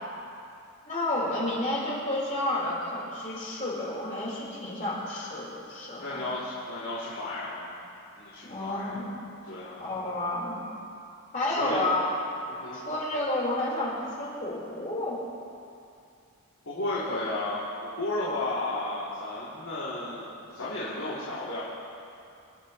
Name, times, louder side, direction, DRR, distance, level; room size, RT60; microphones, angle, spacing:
voice 1, 0.8-6.2 8.4-9.1 9.8-10.6 11.3-12.0 12.7-15.2, left 1 dB, 35° left, -6 dB, 4.6 m, -30 dB
voice 2, 6.0-7.7 8.2-9.0 9.5-9.8 11.6-11.9 12.6-12.8 16.6-17.6 18.0-21.6, left 2 dB, 70° left, -10 dB, 3.3 m, -33 dB
27.0 x 11.5 x 3.3 m, 2.5 s
head